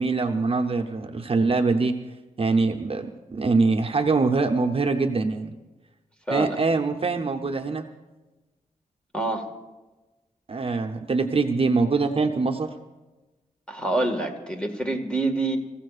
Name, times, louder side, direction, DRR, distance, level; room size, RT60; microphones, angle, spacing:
voice 1, 0.0-1.9 2.4-5.5 6.3-7.9 10.5-12.7, right 4 dB, 40° right, 3 dB, 0.8 m, -23 dB
voice 2, 6.3-6.6 9.1-9.5 13.7-15.6, right 2 dB, 5° left, 3 dB, 1.7 m, -26 dB
27.0 x 15.5 x 2.5 m, 1.2 s
wide cardioid pair, 120°, 14 cm